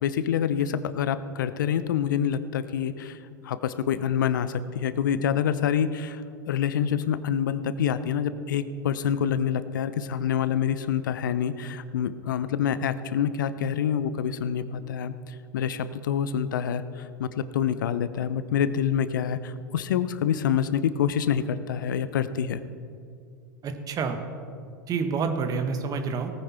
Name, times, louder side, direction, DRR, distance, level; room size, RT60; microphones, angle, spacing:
voice 1, 0.0-22.6, left 8 dB, 70° left, 13 dB, 0.7 m, -27 dB
voice 2, 23.6-24.2 24.9-26.3, right 5 dB, 35° right, 7 dB, 1.5 m, -28 dB
18.5 x 9.5 x 4.4 m, 2.4 s
hypercardioid pair, 90°, 11 cm